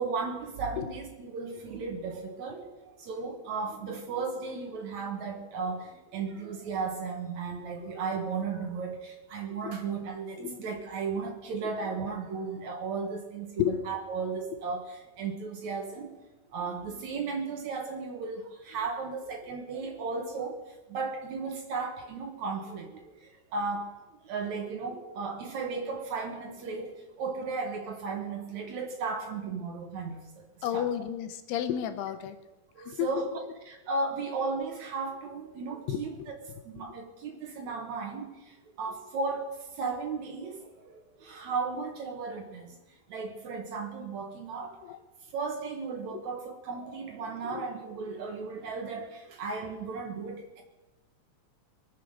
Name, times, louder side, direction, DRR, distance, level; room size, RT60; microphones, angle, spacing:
voice 1, 0.0-16.2 16.5-23.9 24.2-30.9 32.8-33.4 33.7-36.4 36.7-42.8 43.1-44.8 45.3-50.6, right 4 dB, 65° right, 4 dB, 2.0 m, -35 dB
voice 2, 30.6-32.4 32.9-33.1 33.4-33.5 35.9-36.0 44.8-45.0 47.5-47.7, left 11 dB, 80° left, 9 dB, 3.0 m, -31 dB
23.0 x 7.7 x 6.6 m, 1.1 s
omnidirectional pair, 4.7 m